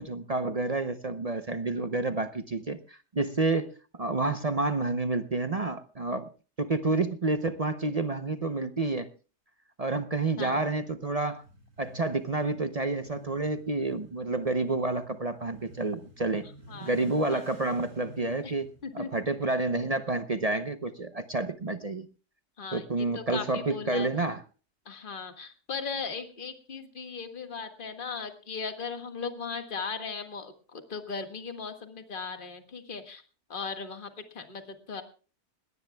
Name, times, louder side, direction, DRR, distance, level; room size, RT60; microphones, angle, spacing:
voice 1, 0.0-6.3 6.6-9.1 9.8-11.4 11.8-16.5 16.8-18.7 18.9-22.1 22.7-24.4, right 3 dB, 40° right, 10 dB, 0.6 m, -29 dB
Motorcycle / Accelerating revving vroom, 11.3-20.2, right 1 dB, 70° right, 5.8 m, -53 dB
voice 2, 22.6-24.1 24.8-33.2 33.5-35.0, left 5 dB, 35° left, 6 dB, 1.8 m, -37 dB
21.0 x 18.0 x 2.3 m, 0.36 s
omnidirectional pair, 1.6 m